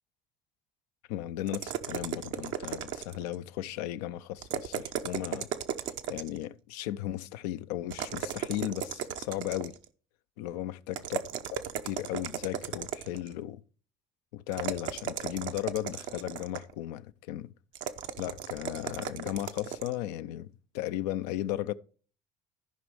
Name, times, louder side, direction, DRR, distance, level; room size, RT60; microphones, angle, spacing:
voice 1, 1.1-5.5 6.1-9.8 10.4-11.2 11.5-11.6 11.8-13.6 14.3-17.5 18.2-21.7, left 13 dB, 85° left, 0.4 m, -36 dB
sound 1, 1.5-3.4 4.4-6.4 7.9-9.9 10.9-13.3 14.5-16.7 17.7-20.0, right 9 dB, 70° right, 0.7 m, -36 dB
14.5 x 5.2 x 3.2 m
hypercardioid pair, 60°, 20 cm